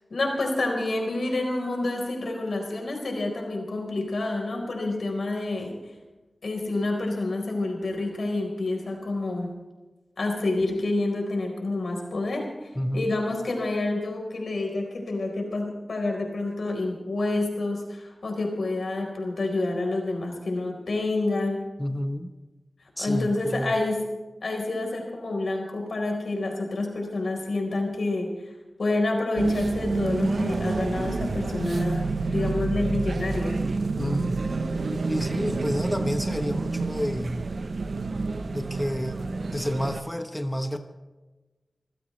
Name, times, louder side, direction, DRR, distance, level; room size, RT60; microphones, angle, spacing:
voice 1, 0.1-5.7 6.4-9.5 10.2-21.6 23.0-24.0 24.4-28.3 28.8-33.6, left 2 dB, 80° left, 2 dB, 4.2 m, -28 dB
voice 2, 12.7-13.1 21.8-22.3 23.0-23.7 34.0-34.4 34.8-37.4 38.5-39.2 39.5-40.8, equal, 10° left, 6 dB, 1.1 m, -29 dB
sound 1, 29.4-40.0, right 3 dB, 80° right, 0.9 m, -28 dB
25.5 x 15.0 x 3.3 m, 1.2 s
wide cardioid pair, 65°, 0 cm